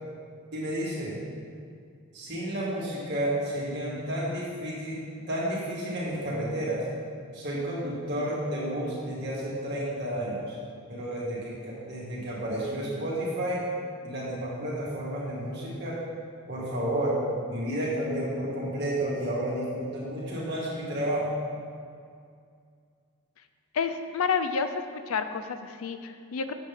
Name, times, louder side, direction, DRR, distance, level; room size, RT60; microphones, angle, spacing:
voice 1, 0.5-1.2 2.1-5.0 5.3-6.8 7.3-10.6 10.9-13.6 14.0-16.0 16.5-17.2 17.5-21.3, right 1 dB, 50° right, -7 dB, 2.0 m, -31 dB
voice 2, 23.7-24.7 25.1-26.5, left 6 dB, 80° left, 9 dB, 0.5 m, -29 dB
8.1 x 7.1 x 3.6 m, 2.2 s
head